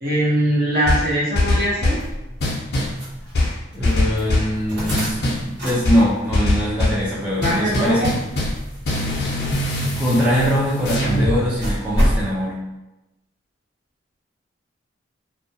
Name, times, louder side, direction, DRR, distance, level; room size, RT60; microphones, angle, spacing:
voice 1, 0.0-2.0 7.4-8.1, right 1 dB, 50° right, -7 dB, 0.8 m, -21 dB
sound 1, 0.9-2.1 2.4-3.0 3.3-4.5 4.9-5.5 5.8-7.0 7.4-8.6 8.8-11.4, left 1 dB, 55° left, 0.5 m, -22 dB
sound 2, 1.8-12.3, equal, 75° right, 1.1 m, -30 dB
voice 2, 3.7-8.1 9.9-12.6, equal, 5° right, -9 dB, 0.5 m, -22 dB
2.2 x 2.1 x 2.7 m, 0.97 s
head